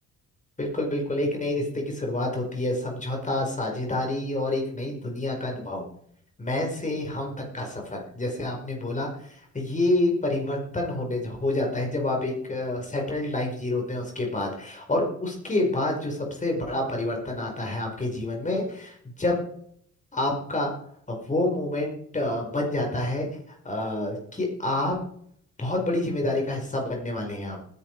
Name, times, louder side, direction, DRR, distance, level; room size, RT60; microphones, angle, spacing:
voice 1, 0.6-5.8 6.4-19.4 20.1-20.7 21.1-25.0 25.6-27.6, left 2 dB, 25° left, 1 dB, 5.0 m, -28 dB
19.5 x 10.0 x 4.8 m, 0.66 s
cardioid pair, 90°, 30 cm